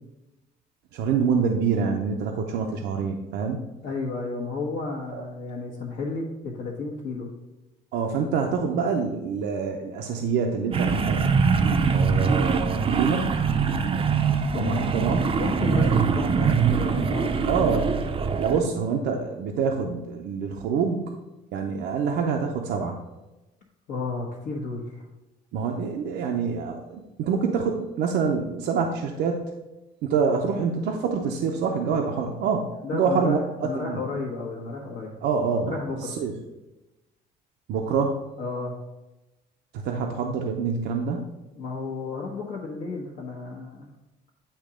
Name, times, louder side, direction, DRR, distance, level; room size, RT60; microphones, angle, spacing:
voice 1, 0.9-3.6 5.1-5.2 7.9-11.3 11.9-13.3 14.5-15.3 15.8-15.9 17.4-17.9 18.4-21.2 21.5-23.0 25.5-29.4 30.0-34.0 35.2-36.3 37.7-38.2 39.7-41.3, right 5 dB, 80° right, 2 dB, 0.6 m, -26 dB
voice 2, 3.8-7.3 14.5-15.0 15.3-17.6 23.9-25.1 32.8-35.1 35.7-36.2 38.4-38.8 41.5-43.9, left 3 dB, 65° left, -4 dB, 1.1 m, -32 dB
sound 1, 10.7-18.6, right 5 dB, 30° right, 0.5 m, -23 dB
8.7 x 2.9 x 4.9 m, 1.0 s
cardioid pair, 110°, 17 cm